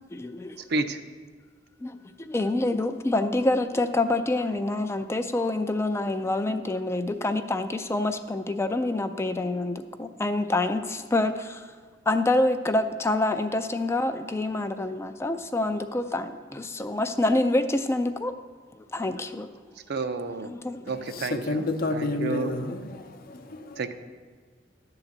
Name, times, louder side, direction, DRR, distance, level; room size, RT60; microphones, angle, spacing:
voice 1, 0.1-0.6 1.8-11.7 12.1-18.3 18.9-19.5 20.4-20.8, left 2 dB, 15° left, 0.3 m, -27 dB
voice 2, 19.9-20.5 20.9-21.6 21.9-22.5 23.8-23.9, right 3 dB, 60° right, 0.6 m, -30 dB
voice 3, 20.9-23.9, left 2 dB, 55° left, 0.7 m, -31 dB
11.5 x 3.9 x 7.2 m
head